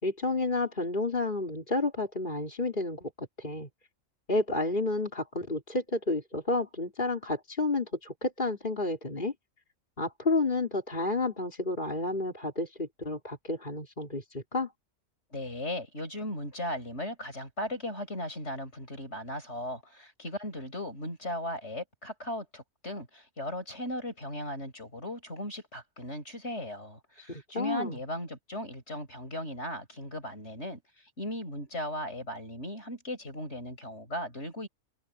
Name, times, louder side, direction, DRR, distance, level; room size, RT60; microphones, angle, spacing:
voice 1, 0.0-3.7 4.3-9.3 10.0-14.7 27.3-28.0, left 2 dB, 35° left, 4.5 m, -31 dB
voice 2, 15.3-30.8 31.2-34.7, left 1 dB, 55° left, 8.2 m, -37 dB
omnidirectional pair, 1.4 m